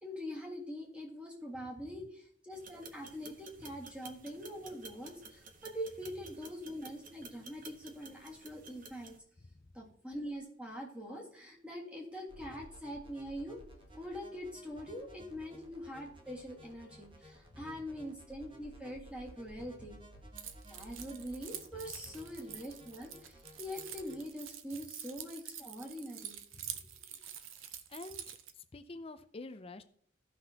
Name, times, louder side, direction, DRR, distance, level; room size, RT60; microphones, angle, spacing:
voice 1, 0.0-9.2 9.7-13.6 13.9-20.0 20.7-26.3, equal, 5° right, -1 dB, 1.8 m, -44 dB
sound 1, 2.5-9.2, right 3 dB, 40° right, 0.8 m, -53 dB
voice 2, 9.4-9.7 17.5-17.8 19.6-19.7 22.0-22.1 26.5-26.8 27.1-27.6 27.9-29.8, left 2 dB, 30° left, 10 dB, 0.5 m, -50 dB
sound 2, 12.3-24.3, equal, 25° right, 1.3 m, -56 dB
Keys jangling, 20.4-28.5, right 10 dB, 85° right, 0.7 m, -47 dB
15.0 x 5.8 x 2.8 m, 0.62 s
head